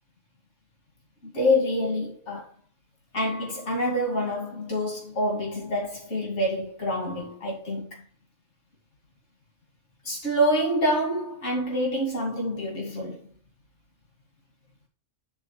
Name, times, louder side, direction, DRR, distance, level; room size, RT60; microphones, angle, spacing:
voice 1, 1.2-2.5 3.1-8.0 10.0-13.2, equal, 70° left, 3.0 m, -27 dB
10.5 x 4.0 x 5.8 m
omnidirectional pair, 1.3 m